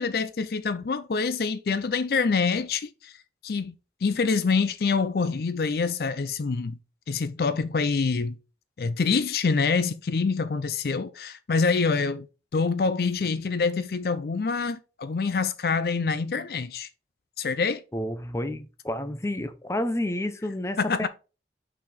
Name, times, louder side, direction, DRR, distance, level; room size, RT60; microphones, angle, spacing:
voice 1, 0.0-3.1 3.4-3.7 4.0-6.8 7.1-8.4 8.8-12.3 12.5-16.9 17.4-17.8 20.8-21.1, left 4 dB, 55° left, 0.4 m, -26 dB
voice 2, 17.9-21.1, left 1 dB, 15° left, 0.6 m, -30 dB
5.9 x 4.1 x 4.3 m
head